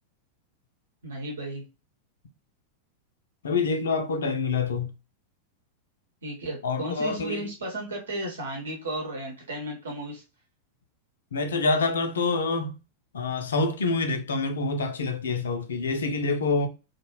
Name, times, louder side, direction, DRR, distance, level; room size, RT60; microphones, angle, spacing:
voice 1, 1.0-1.6 6.2-10.2, right 1 dB, 65° right, 1.0 m, -34 dB
voice 2, 3.4-4.9 6.6-7.5 11.3-12.8 13.1-16.7, left 3 dB, 65° left, 0.4 m, -26 dB
2.6 x 2.2 x 2.9 m
figure-of-eight pair, 90°, 0 cm